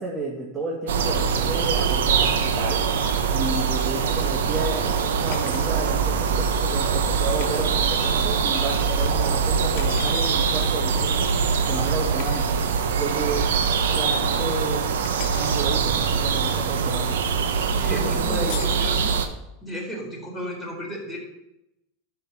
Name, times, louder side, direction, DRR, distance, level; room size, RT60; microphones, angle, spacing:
voice 1, 0.0-2.8 3.3-11.3 11.7-12.5 13.0-17.2 17.8-18.6, right 2 dB, 25° right, -3 dB, 2.0 m, -32 dB
sound 1, 0.9-19.3, right 6 dB, 90° right, 1.0 m, -23 dB
sound 2, 5.3-5.8 7.4-7.6 9.8-10.4 12.2-12.4 15.0-15.6 18.5-18.9, left 13 dB, 60° left, 0.7 m, -38 dB
voice 2, 17.7-19.1 19.6-21.2, equal, ahead, -4 dB, 4.2 m, -34 dB
11.5 x 5.8 x 5.7 m, 0.87 s
supercardioid pair, 125°, 0 cm